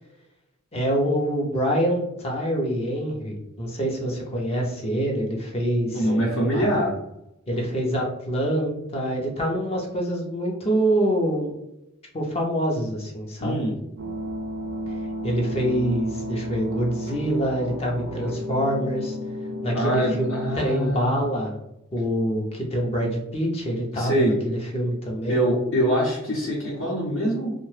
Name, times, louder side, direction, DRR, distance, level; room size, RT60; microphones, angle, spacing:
voice 1, 0.7-6.1 6.5-6.7 7.5-11.5 12.1-13.6 15.2-19.2 19.6-21.6 21.9-25.5, equal, 30° left, -1 dB, 0.5 m, -25 dB
voice 2, 5.9-6.9 13.4-13.7 19.7-21.2 23.9-24.3 25.3-27.5, equal, 60° left, -5 dB, 0.8 m, -24 dB
sound 1, 14.0-20.6, equal, 55° right, 0.6 m, -32 dB
2.8 x 2.1 x 3.2 m, 0.87 s
head